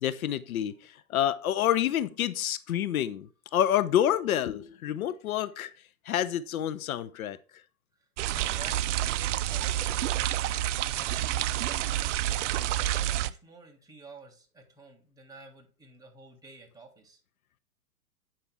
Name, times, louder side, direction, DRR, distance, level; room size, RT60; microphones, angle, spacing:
voice 1, 0.0-5.7 6.1-7.4, left 11 dB, 70° left, 0.6 m, -28 dB
voice 2, 7.9-10.3 10.8-11.3 11.6-12.3 12.9-17.2, right 3 dB, 10° right, 1.7 m, -51 dB
sound 1, 8.2-13.3, right 13 dB, 55° right, 0.5 m, -29 dB
8.4 x 5.7 x 3.5 m
hypercardioid pair, 120°, 45 cm